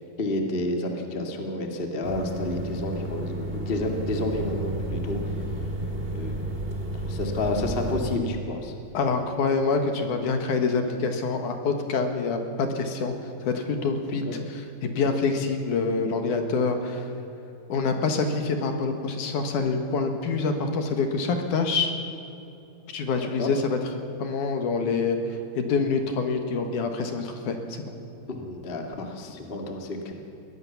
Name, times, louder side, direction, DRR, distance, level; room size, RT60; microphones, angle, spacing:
voice 1, 0.2-5.3 6.1-6.3 7.1-8.7 14.2-14.4 23.4-23.5 28.3-30.1, left 2 dB, 25° left, 3 dB, 1.2 m, -30 dB
sound 1, 2.0-8.2, right 1 dB, 20° right, 1.7 m, -32 dB
voice 2, 8.9-13.1 13.4-14.2 14.8-17.1 17.7-21.9 22.9-23.8 24.2-25.2 25.6-28.0, left 4 dB, 65° left, 5 dB, 2.7 m, -26 dB
22.0 x 18.5 x 7.1 m, 2.8 s
omnidirectional pair, 4.3 m